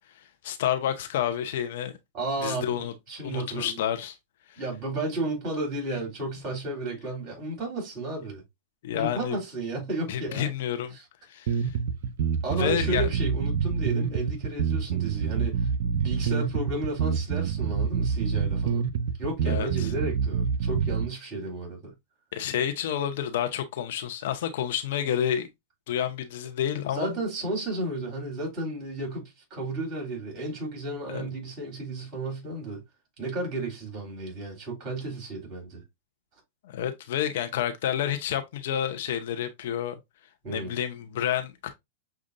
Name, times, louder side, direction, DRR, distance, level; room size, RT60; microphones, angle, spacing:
voice 1, 0.4-1.9 2.4-2.9 3.2-4.2 4.5-4.6 8.8-9.4 10.1-10.9 11.3-11.7 12.6-13.1 19.5-19.9 22.3-25.5 25.9-27.2 31.1-31.3 36.6-40.0 40.5-41.7, left 10 dB, 60° left, 0.7 m, -29 dB
voice 2, 2.1-3.8 4.6-8.4 8.9-10.5 10.9-11.0 12.4-18.8 19.2-21.9 26.9-32.8 33.2-35.8 40.4-40.7, right 2 dB, 35° right, 3.3 m, -33 dB
sound 1, 11.5-21.1, right 6 dB, 60° right, 0.4 m, -27 dB
6.5 x 2.4 x 2.5 m
hypercardioid pair, 105°, 0 cm